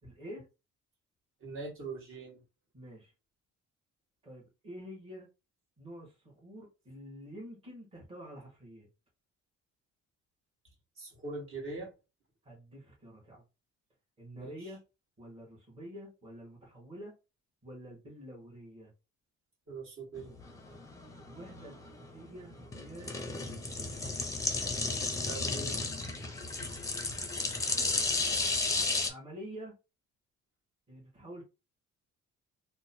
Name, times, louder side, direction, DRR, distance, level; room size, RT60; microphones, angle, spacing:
voice 1, 0.0-0.5 2.7-3.1 4.2-5.3 5.8-8.9 12.4-13.4 14.2-14.8 15.2-17.1 17.6-18.9 20.7-20.8 21.2-24.0 26.3-26.4 27.7-28.1 29.0-29.8 30.9-31.4, equal, 20° right, 1.4 m, -48 dB
voice 2, 1.4-2.4 11.0-11.9 14.3-14.7 19.7-20.3 25.2-25.8, right 3 dB, 45° right, 1.7 m, -42 dB
sound 1, 20.2-29.1, left 3 dB, 10° left, 0.6 m, -33 dB
3.0 x 2.2 x 4.1 m
cardioid pair, 165°, 29 cm